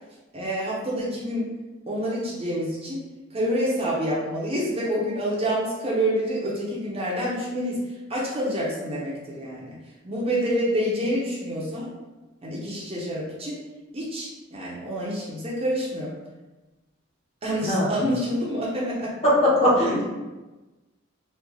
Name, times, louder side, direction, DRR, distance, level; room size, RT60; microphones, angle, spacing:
voice 1, 0.3-1.5 1.9-3.0 3.3-7.8 8.1-9.8 10.0-11.9 12.4-13.6 13.9-16.1 17.4-19.1, equal, 30° right, -5 dB, 0.6 m, -27 dB
voice 2, 19.2-20.0, left 1 dB, 30° left, -7 dB, 1.0 m, -19 dB
3.1 x 2.3 x 3.6 m, 1.1 s
head